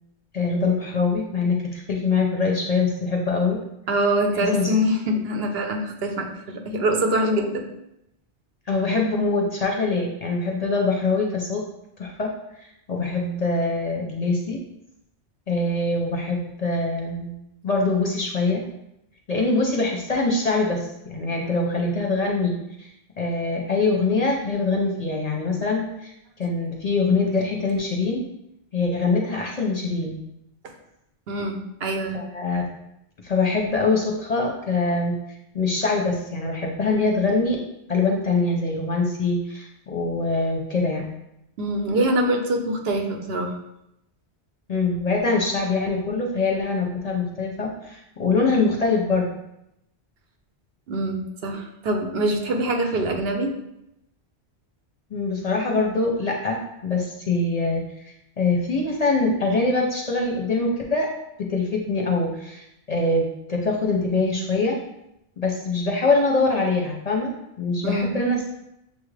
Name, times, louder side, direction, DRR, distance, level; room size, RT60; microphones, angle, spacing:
voice 1, 0.3-3.6 4.3-4.7 8.7-11.6 12.0-12.3 12.9-14.6 15.5-17.3 17.6-18.6 19.3-22.5 22.8-22.9 23.2-26.1 26.4-28.2 28.7-30.2 32.1-32.6 33.2-35.1 35.5-37.6 37.9-41.1 44.7-49.3 55.1-61.1 61.4-64.8 65.4-67.3 67.6-68.5, left 3 dB, 45° left, -1 dB, 0.6 m, -23 dB
voice 2, 3.9-7.7 31.3-32.2 41.6-43.6 50.9-53.5 67.8-68.1, right 1 dB, 65° right, 4 dB, 0.9 m, -24 dB
6.8 x 2.4 x 3.2 m, 0.83 s
omnidirectional pair, 1.1 m